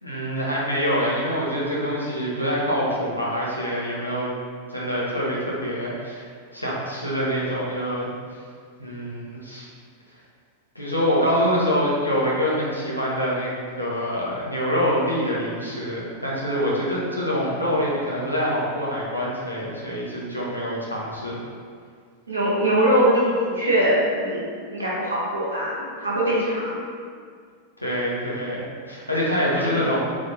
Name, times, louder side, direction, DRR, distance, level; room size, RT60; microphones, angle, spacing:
voice 1, 0.0-4.3 4.7-6.2 6.5-8.4 8.8-9.7 10.7-21.4 27.8-30.0, equal, 85° left, -6 dB, 0.9 m, -25 dB
voice 2, 22.3-24.4 24.7-26.8, right 1 dB, 80° right, -7 dB, 1.3 m, -22 dB
3.7 x 3.0 x 4.0 m, 2.1 s
figure-of-eight pair, 90°, 0 cm